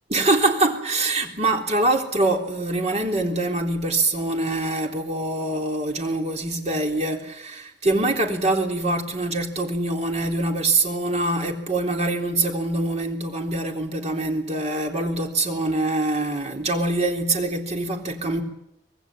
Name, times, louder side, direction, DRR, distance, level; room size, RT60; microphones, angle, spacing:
voice 1, 0.1-18.4, right 2 dB, 40° right, 3.7 m, -24 dB
25.5 x 20.0 x 9.1 m
head